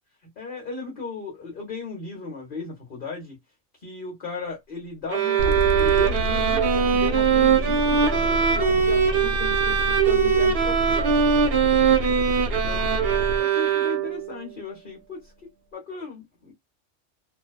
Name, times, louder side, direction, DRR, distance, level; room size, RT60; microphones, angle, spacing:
voice 1, 0.4-3.4 3.8-11.2 12.5-15.3 15.7-16.5, left 4 dB, 45° left, 1.0 m, -36 dB
sound 1, 5.1-14.3, right 7 dB, 60° right, 0.7 m, -21 dB
sound 2, 5.4-13.4, left 1 dB, 80° right, 1.0 m, -29 dB
2.6 x 2.2 x 2.2 m
omnidirectional pair, 1.4 m